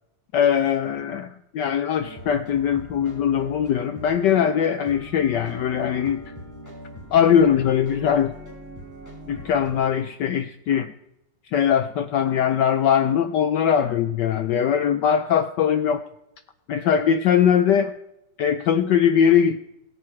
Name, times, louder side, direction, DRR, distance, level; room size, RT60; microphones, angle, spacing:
voice 1, 0.3-6.2 7.1-8.3 9.3-10.9 11.5-16.0 16.7-17.9 18.4-19.6, left 8 dB, 70° left, 10 dB, 1.1 m, -21 dB
sound 1, 2.0-9.8, equal, 5° left, 5.7 m, -41 dB
22.0 x 9.6 x 3.2 m, 0.86 s
omnidirectional pair, 2.3 m